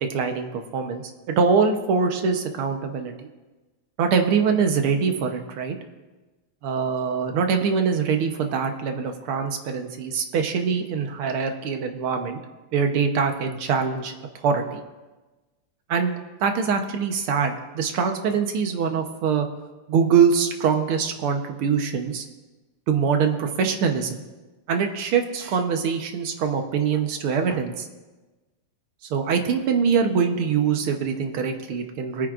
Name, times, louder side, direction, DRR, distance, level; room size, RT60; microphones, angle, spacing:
voice 1, 0.1-1.0 1.4-3.1 4.0-5.8 6.6-12.4 12.7-14.1 14.4-14.8 15.9-16.1 16.4-19.5 19.9-22.3 22.9-24.2 24.7-27.9 29.1-32.3, right 6 dB, 85° right, 5 dB, 1.9 m, -23 dB
22.5 x 9.6 x 2.5 m, 1.2 s
omnidirectional pair, 2.3 m